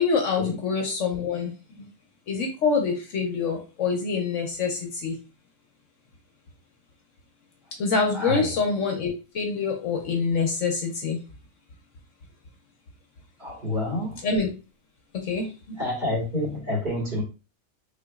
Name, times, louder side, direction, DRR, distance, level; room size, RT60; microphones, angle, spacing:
voice 1, 0.0-1.9 2.3-5.1 7.8-11.2 14.2-14.5 15.2-15.8, left 5 dB, 65° left, 0.9 m, -26 dB
voice 2, 8.1-8.5 13.4-14.2 15.8-17.2, left 1 dB, 35° right, 1.6 m, -28 dB
3.9 x 2.9 x 2.3 m
omnidirectional pair, 1.5 m